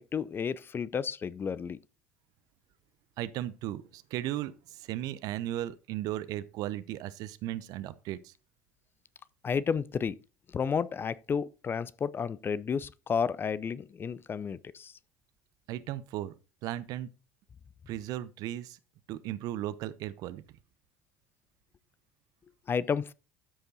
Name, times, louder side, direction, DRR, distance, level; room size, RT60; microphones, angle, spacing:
voice 1, 0.0-1.8 9.4-10.2 10.5-14.9 22.7-23.1, left 6 dB, 30° left, 0.5 m, -32 dB
voice 2, 3.2-8.3 15.7-16.3 16.6-17.1 17.9-18.8 19.1-20.4, right 13 dB, 60° right, 0.8 m, -36 dB
12.5 x 5.3 x 4.0 m
hypercardioid pair, 70°, 7 cm